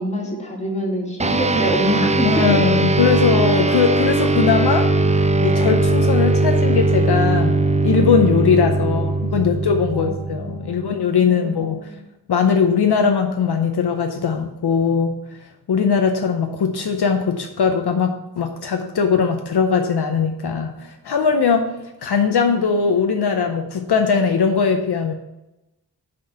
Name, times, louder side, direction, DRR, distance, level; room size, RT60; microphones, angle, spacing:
voice 1, 0.0-2.8 8.8-12.0, left 1 dB, 15° left, -1 dB, 1.9 m, -27 dB
sound 1, 1.2-10.9, right 2 dB, 20° right, 0.4 m, -19 dB
voice 2, 2.2-4.9 5.4-11.8 12.3-15.2 15.7-21.7 22.0-25.1, left 6 dB, 65° left, 5 dB, 0.7 m, -20 dB
5.7 x 5.4 x 6.5 m, 0.95 s
wide cardioid pair, 125°, 42 cm